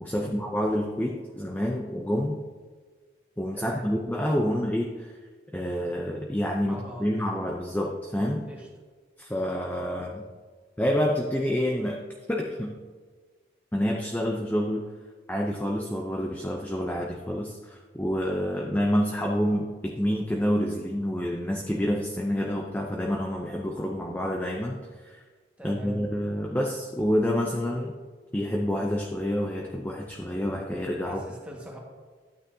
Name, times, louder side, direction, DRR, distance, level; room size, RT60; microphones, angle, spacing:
voice 1, 0.0-2.4 3.4-5.2 5.5-8.5 9.2-10.2 10.8-12.0 12.3-12.8 13.7-14.8 15.3-25.2 25.6-28.0 28.3-31.2, equal, 10° left, 0 dB, 0.5 m, -28 dB
voice 2, 3.5-3.9 6.6-7.1 8.5-8.7 25.6-26.0 31.1-31.8, equal, 5° right, -2 dB, 1.6 m, -41 dB
12.0 x 8.9 x 2.8 m, 1.4 s
head